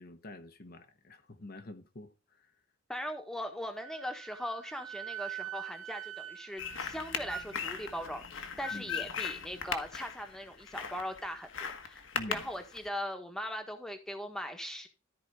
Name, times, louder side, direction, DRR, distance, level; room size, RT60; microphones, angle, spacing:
voice 1, 0.0-2.5 8.7-9.1 12.1-12.4, left 1 dB, 45° left, 1.0 m, -47 dB
voice 2, 2.9-14.9, equal, ahead, 1.4 m, -40 dB
Wind instrument woodwind instrument, 3.8-8.2, right 11 dB, 70° right, 1.8 m, -45 dB
sound 1, 6.6-12.9, left 6 dB, 60° left, 1.4 m, -38 dB
13.5 x 5.0 x 4.7 m
head